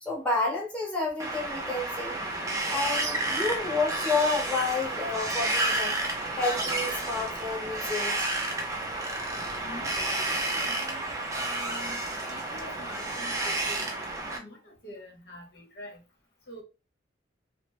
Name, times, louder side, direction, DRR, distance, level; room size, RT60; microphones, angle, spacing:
voice 1, 0.0-2.2 2.7-5.9 6.3-8.4, left 3 dB, 5° left, 0.9 m, -30 dB
Wind, 1.2-14.4, right 2 dB, 15° right, 0.4 m, -31 dB
voice 2, 9.6-11.1 11.3-12.0 12.3-14.0 14.3-16.0 16.5-16.6, left 1 dB, 55° left, 0.9 m, -45 dB
2.8 x 2.0 x 3.0 m
head